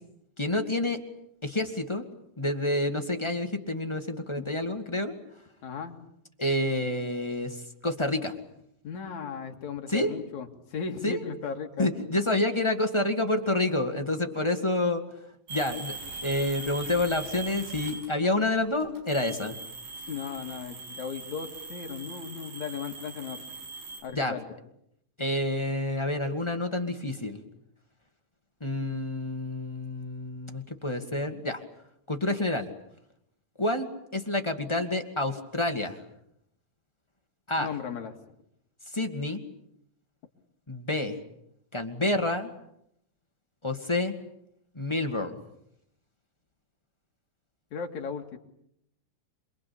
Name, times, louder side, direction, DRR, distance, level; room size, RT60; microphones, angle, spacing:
voice 1, 0.4-1.0 1.4-2.0 2.4-5.2 6.4-7.6 7.8-8.3 9.9-10.1 11.0-11.2 11.8-15.0 15.5-15.9 16.2-19.6 24.1-24.3 25.2-27.4 28.6-31.6 32.1-32.7 33.6-36.0 37.5-37.7 38.9-39.4 40.7-41.2 41.7-42.5 43.6-44.1 44.7-45.4, left 1 dB, 15° left, 4 dB, 1.0 m, -28 dB
voice 2, 5.6-6.0 8.8-11.9 20.1-23.4 24.0-24.5 37.6-38.4 47.7-48.4, left 6 dB, 55° left, 4 dB, 3.4 m, -36 dB
sound 1, 15.5-18.3 18.8-24.0, right 3 dB, 90° right, 8.5 m, -41 dB
28.0 x 22.5 x 8.6 m, 0.76 s
omnidirectional pair, 4.0 m